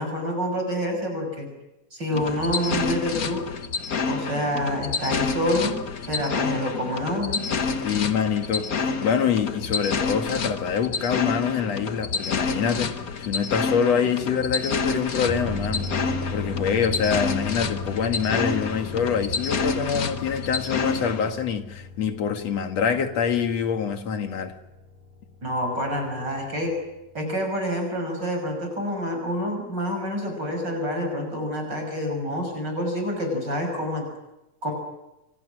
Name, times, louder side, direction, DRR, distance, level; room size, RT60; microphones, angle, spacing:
voice 1, 0.0-1.5 1.9-3.4 4.1-5.8 6.1-7.4 25.4-26.7 27.1-34.0 34.6-34.7, equal, 30° right, 6.6 m, -27 dB
sound 1, 2.1-21.3, left 5 dB, 75° left, 0.8 m, -29 dB
voice 2, 7.8-15.9 16.3-24.5, left 7 dB, 55° left, 2.7 m, -25 dB
sound 2, 15.2-26.8 27.1-27.2, left 3 dB, 90° right, 6.0 m, -36 dB
29.0 x 27.0 x 6.4 m
omnidirectional pair, 3.7 m